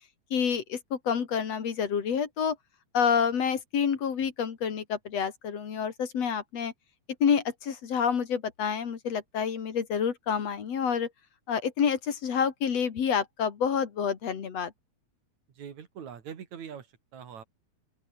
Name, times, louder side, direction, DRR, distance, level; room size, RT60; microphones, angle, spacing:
voice 1, 0.3-2.6 2.9-6.7 7.2-11.1 11.5-14.7, left 7 dB, 60° left, 3.3 m, -28 dB
voice 2, 15.6-16.9 17.1-17.4, right 8 dB, 75° right, 3.7 m, -42 dB
open air
omnidirectional pair, 3.3 m